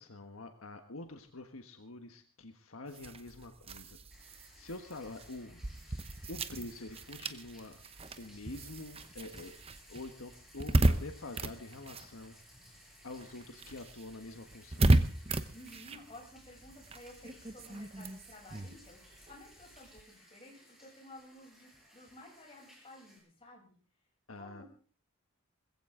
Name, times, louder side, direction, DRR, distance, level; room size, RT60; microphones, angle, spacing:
voice 1, 0.0-4.0 4.6-5.6 6.3-7.8 8.2-9.5 9.9-12.4 13.0-14.9 24.3-24.6, left 2 dB, 70° left, 6 dB, 1.4 m, -46 dB
sound 1, 2.9-12.8 13.1-20.0, right 1 dB, 25° right, 0.9 m, -34 dB
Bathtub (filling or washing), 4.1-23.2, equal, ahead, 6.1 m, -59 dB
voice 2, 15.5-23.7 24.3-24.7, left 1 dB, 25° left, -1 dB, 7.7 m, -54 dB
20.5 x 16.0 x 3.8 m, 0.41 s
head